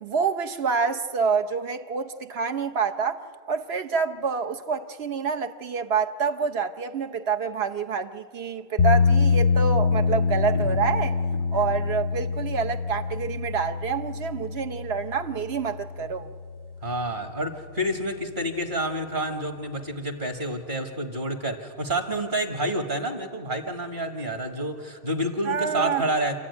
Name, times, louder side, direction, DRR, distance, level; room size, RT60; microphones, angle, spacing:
voice 1, 0.0-3.2 3.5-11.1 11.5-16.3 25.5-26.1, right 6 dB, 70° right, 1.2 m, -27 dB
sound 1, 8.8-16.9, left 5 dB, 85° left, 1.1 m, -25 dB
voice 2, 16.8-26.4, right 1 dB, 50° right, 2.0 m, -29 dB
27.0 x 14.0 x 9.6 m
omnidirectional pair, 1.1 m